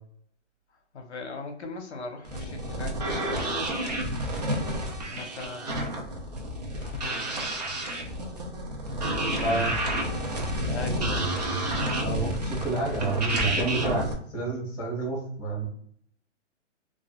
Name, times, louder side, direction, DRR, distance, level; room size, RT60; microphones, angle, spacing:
voice 1, 0.9-3.6 5.1-6.1 6.8-7.3 10.6-11.3, left 3 dB, 60° left, 4 dB, 0.8 m, -40 dB
sound 1, 2.2-14.1, right 1 dB, 35° right, 0.5 m, -30 dB
voice 2, 9.4-9.7 12.0-14.1 14.3-15.6, right 2 dB, 35° left, -2 dB, 1.3 m, -29 dB
3.1 x 2.4 x 2.3 m, 0.64 s
hypercardioid pair, 175°, 37 cm